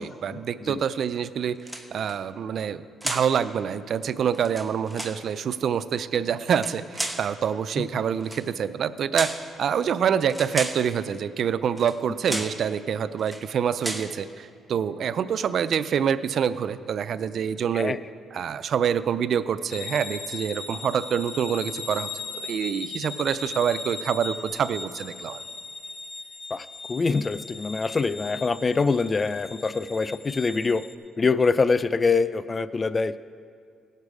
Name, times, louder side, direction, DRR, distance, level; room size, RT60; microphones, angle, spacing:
voice 1, 0.0-1.6 1.9-9.3 9.6-17.9 18.3-22.1 22.4-25.4, right 8 dB, 60° right, 13 dB, 0.4 m, -26 dB
sound 1, 1.6-2.2 3.0-3.4 4.3-5.2 6.4-7.3 8.2-8.5 9.1-9.5 10.3-10.9 11.8-12.0 12.3-12.6 13.2-13.5 13.8-14.1, right 1 dB, 5° right, 0.9 m, -33 dB
sound 2, 19.7-30.9, left 4 dB, 50° left, 1.1 m, -38 dB
voice 2, 26.5-30.8 31.2-33.2, left 4 dB, 30° left, 15 dB, 0.4 m, -24 dB
17.0 x 6.7 x 4.8 m, 2.2 s
cardioid pair, 90°, 0 cm